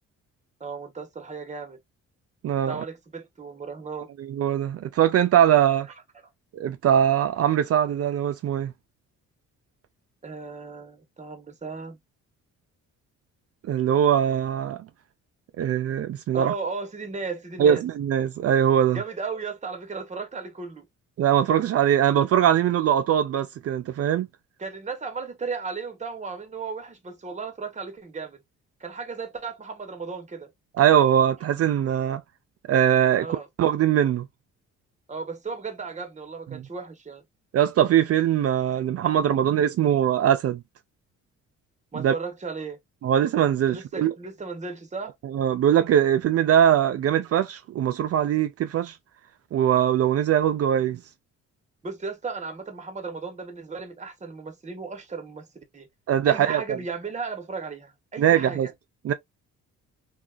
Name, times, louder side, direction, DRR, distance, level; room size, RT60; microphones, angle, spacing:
voice 1, 0.6-1.8 2.6-4.1 10.2-12.0 16.3-17.8 18.9-20.9 24.6-28.4 28.8-30.5 33.2-33.5 35.1-37.2 41.9-42.8 43.7-45.1 51.8-55.9 56.2-58.7, right 4 dB, 25° right, 1.0 m, -35 dB
voice 2, 2.4-2.8 4.2-5.9 6.5-8.7 13.7-14.8 15.6-16.5 17.6-19.0 21.2-24.3 30.8-32.2 32.7-33.3 33.6-34.3 36.5-36.6 37.5-40.6 42.0-42.1 43.0-44.1 45.2-49.0 49.5-51.0 56.1-56.6 58.2-58.7 59.0-59.1, right 10 dB, 50° right, 0.4 m, -21 dB
2.8 x 2.3 x 2.3 m
cardioid pair, 90°, 30 cm